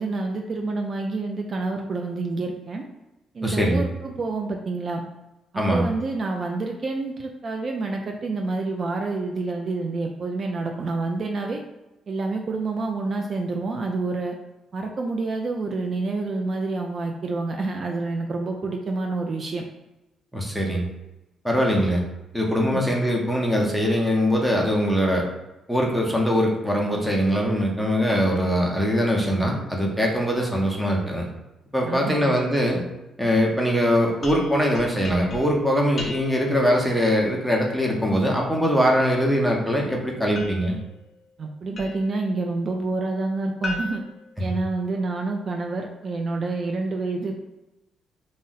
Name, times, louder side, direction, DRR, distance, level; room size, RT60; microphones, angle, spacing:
voice 1, 0.0-2.8 3.3-5.0 5.5-11.6 12.1-14.3 14.7-19.6 22.6-22.9 31.8-32.3 41.4-44.0 44.4-47.4, right 3 dB, 45° right, 2 dB, 0.3 m, -28 dB
voice 2, 3.4-3.8 5.6-5.9 20.3-20.9 21.4-22.0 22.3-25.3 25.7-31.3 31.7-32.8 33.2-40.8 44.5-44.6, equal, 5° right, -1 dB, 0.7 m, -22 dB
sound 1, 34.2-36.6 40.3-42.2 43.6-45.1, left 2 dB, 45° left, 0.6 m, -38 dB
2.5 x 2.0 x 3.9 m, 0.98 s
cardioid pair, 90°, 0 cm